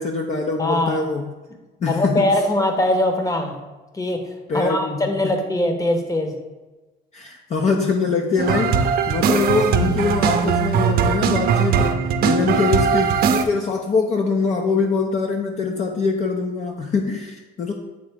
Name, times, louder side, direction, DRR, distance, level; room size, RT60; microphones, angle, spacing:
voice 1, 0.0-1.3 1.8-2.4 4.5-5.3 7.1-17.7, left 4 dB, 45° left, 2 dB, 0.6 m, -23 dB
voice 2, 0.6-1.0 1.9-3.6 3.9-4.2 4.5-6.3, left 1 dB, 20° left, 5 dB, 0.9 m, -21 dB
sound 1, 8.4-13.4, right 6 dB, 65° right, 0.6 m, -20 dB
8.4 x 3.7 x 3.5 m, 1.2 s
cardioid pair, 110°, 17 cm